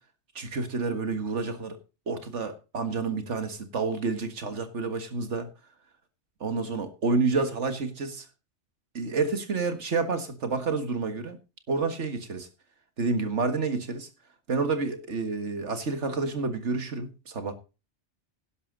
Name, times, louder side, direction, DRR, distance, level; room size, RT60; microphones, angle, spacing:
voice 1, 0.4-1.8 2.1-5.5 6.4-8.3 8.9-11.4 11.7-12.5 13.0-14.1 14.5-17.5, right 4 dB, 80° right, 2.0 m, -29 dB
11.5 x 11.0 x 3.9 m
omnidirectional pair, 1.2 m